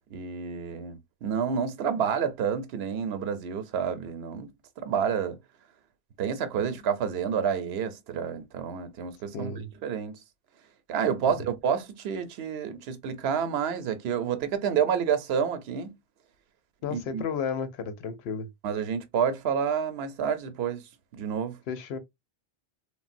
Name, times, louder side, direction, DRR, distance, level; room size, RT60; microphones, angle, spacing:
voice 1, 0.1-4.5 4.8-5.4 6.2-9.5 9.8-10.2 10.9-16.0 16.9-17.2 18.6-20.8 21.1-21.6, right 7 dB, 80° right, 0.8 m, -29 dB
voice 2, 9.3-9.7 11.3-11.4 16.8-18.5 21.7-22.0, left 6 dB, 85° left, 0.9 m, -33 dB
3.4 x 2.1 x 2.4 m
omnidirectional pair, 1.0 m